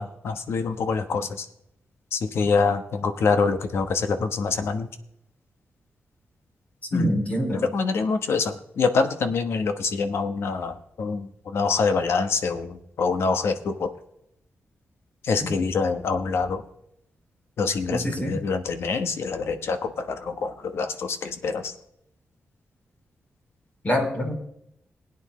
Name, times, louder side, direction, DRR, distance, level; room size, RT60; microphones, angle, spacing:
voice 1, 0.0-1.5 2.1-4.9 6.9-7.1 7.7-13.9 15.2-16.6 17.6-21.7, left 4 dB, 75° left, 8 dB, 1.1 m, -25 dB
voice 2, 6.9-7.6 17.9-18.3 23.8-24.4, equal, 35° left, 2 dB, 3.2 m, -25 dB
20.5 x 9.2 x 3.1 m, 0.76 s
wide cardioid pair, 105°, 4 cm